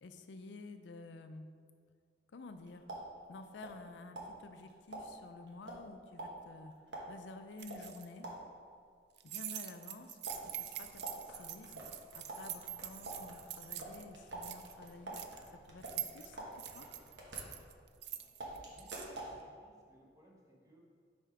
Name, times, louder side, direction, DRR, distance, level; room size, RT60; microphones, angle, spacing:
voice 1, 0.0-1.5 2.3-2.9 3.3-6.7 7.1-8.3 9.2-11.8 12.1-15.2 15.7-16.9, left 3 dB, 75° left, 8 dB, 0.4 m, -51 dB
sound 1, 2.4-3.9 4.2-8.7 10.2-18.0 18.4-19.4, right 2 dB, 80° right, 1.2 m, -48 dB
sound 2, 7.6-8.0 9.2-14.0 14.3-15.5 15.8-19.1, right 12 dB, 65° right, 0.3 m, -45 dB
voice 2, 18.7-20.8, equal, 20° right, -2 dB, 1.0 m, -65 dB
5.6 x 4.3 x 4.8 m, 2.1 s
head